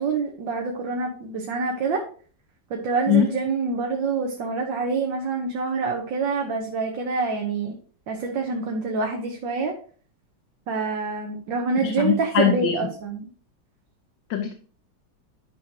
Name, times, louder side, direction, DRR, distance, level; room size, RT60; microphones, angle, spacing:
voice 1, 0.0-2.0 2.7-7.8 8.1-9.7 10.7-13.3, right 4 dB, 80° right, 2 dB, 1.8 m, -26 dB
voice 2, 11.8-12.7 14.3-14.5, left 8 dB, 80° left, 5 dB, 1.6 m, -21 dB
11.0 x 6.4 x 2.9 m, 0.43 s
omnidirectional pair, 2.0 m